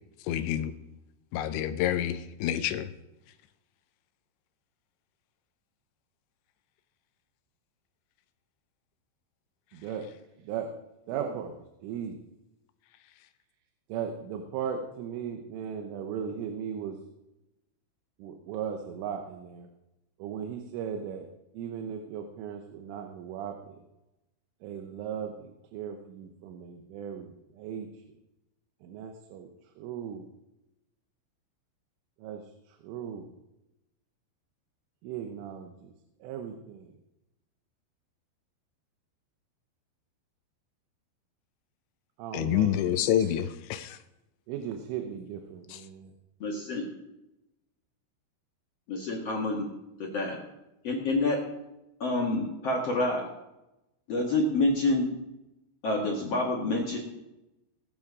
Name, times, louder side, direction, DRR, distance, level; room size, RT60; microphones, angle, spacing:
voice 1, 0.2-0.7 1.3-2.9 42.3-44.0 45.7-45.8, left 11 dB, 80° left, 2.9 m, -28 dB
voice 2, 9.7-10.1 10.5-10.7 11.1-12.2 13.9-17.0 18.2-19.7 20.2-21.3 21.6-23.8 24.6-27.9 28.8-29.5 29.8-30.3 32.2-32.4 32.8-33.3 35.0-35.9 36.2-36.9 42.2-42.8 43.2-43.3 44.5-46.1, right 8 dB, 90° right, 3.5 m, -37 dB
voice 3, 46.4-46.8 48.9-49.7 50.0-50.4 50.8-51.4 52.0-53.2 54.1-55.1 55.8-57.0, left 2 dB, 55° left, 1.8 m, -28 dB
20.0 x 7.4 x 4.8 m
omnidirectional pair, 5.5 m